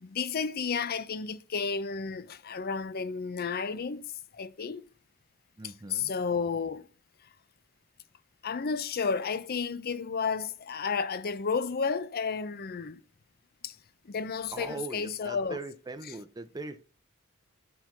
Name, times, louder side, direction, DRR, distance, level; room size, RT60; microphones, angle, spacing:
voice 1, 0.0-4.1 4.3-4.9 5.6-6.9 8.4-13.0 13.6-13.8 14.1-15.6, left 5 dB, 45° left, 0.5 m, -32 dB
voice 2, 5.6-6.1 14.5-16.8, right 3 dB, 20° right, 0.6 m, -40 dB
10.0 x 4.5 x 5.8 m
head